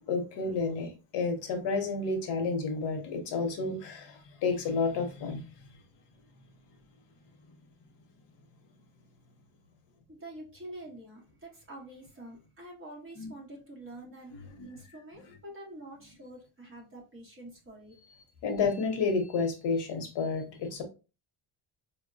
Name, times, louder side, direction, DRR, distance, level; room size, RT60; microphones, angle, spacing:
voice 1, 0.1-5.4 13.2-13.3 14.5-14.7 18.4-20.8, left 4 dB, 55° left, 0.8 m, -30 dB
voice 2, 10.1-18.0, right 1 dB, 25° right, 0.9 m, -47 dB
4.1 x 2.1 x 2.5 m
cardioid pair, 180°, 49 cm